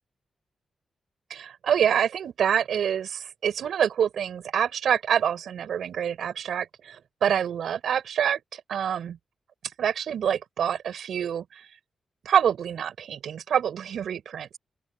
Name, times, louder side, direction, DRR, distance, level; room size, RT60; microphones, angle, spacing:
voice 1, 1.3-9.2 9.8-11.7 12.2-14.6, right 8 dB, 80° right, 7.9 m, -26 dB
open air
wide cardioid pair, 140°, 0 cm